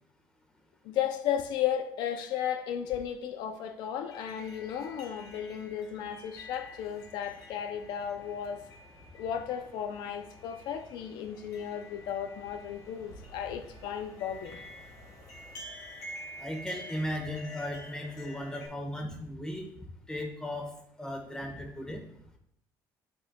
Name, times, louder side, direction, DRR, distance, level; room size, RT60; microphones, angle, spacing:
voice 1, 0.8-8.6 9.1-14.6, left 9 dB, 75° left, 0.5 m, -34 dB
sound 1, 4.0-18.7, left 1 dB, 55° left, 1.8 m, -48 dB
voice 2, 16.4-19.7 20.1-20.7 21.0-22.0, equal, 10° left, 1.3 m, -36 dB
10.5 x 4.4 x 2.2 m
cardioid pair, 140°, 7 cm